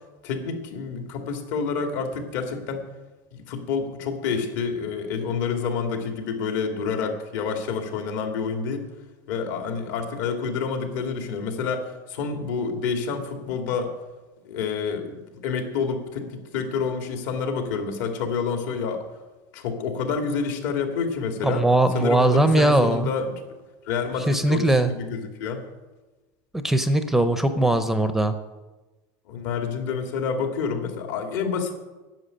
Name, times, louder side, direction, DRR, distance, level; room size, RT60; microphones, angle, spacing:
voice 1, 0.2-2.8 3.3-8.9 9.3-13.9 14.4-19.0 19.5-21.6 21.9-23.4 23.9-25.6 29.3-31.8, left 5 dB, 70° left, 4 dB, 2.4 m, -28 dB
voice 2, 21.4-23.1 24.3-24.9 26.6-28.4, right 2 dB, 5° right, 9 dB, 0.5 m, -20 dB
10.5 x 8.0 x 9.9 m, 1.2 s
cardioid pair, 170°, 10 cm